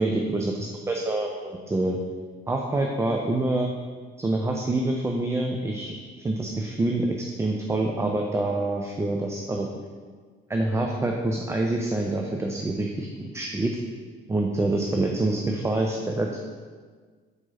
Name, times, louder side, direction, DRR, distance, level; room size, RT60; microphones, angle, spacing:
voice 1, 0.0-2.0 2.5-3.7 4.2-9.7 10.5-13.7 14.3-16.4, right 2 dB, 10° right, 1 dB, 0.4 m, -26 dB
4.9 x 4.5 x 4.2 m, 1.5 s
figure-of-eight pair, 55°, 29 cm